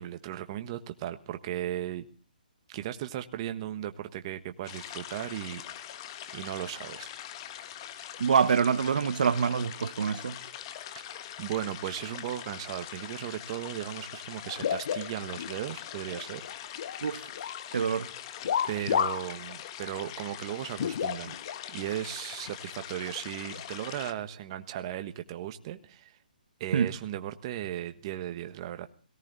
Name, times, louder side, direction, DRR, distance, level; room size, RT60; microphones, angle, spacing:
voice 1, 0.0-2.1 2.7-5.6 6.3-7.1 11.1-16.4 18.7-21.3 21.7-26.2 26.6-28.9, right 12 dB, 30° right, 1.3 m, -36 dB
sound 1, 4.6-24.1, left 11 dB, 30° left, 1.4 m, -43 dB
voice 2, 8.2-10.4 17.0-17.2 17.7-18.1 26.7-26.9, right 6 dB, 65° right, 1.5 m, -25 dB
sound 2, 14.5-15.6 15.9-17.0 17.3-17.7 18.4-19.3 19.6-19.7 20.8-21.6 22.5-22.6 23.5-23.7, left 8 dB, 50° left, 0.7 m, -31 dB
18.5 x 17.5 x 4.1 m
hypercardioid pair, 155°, 5 cm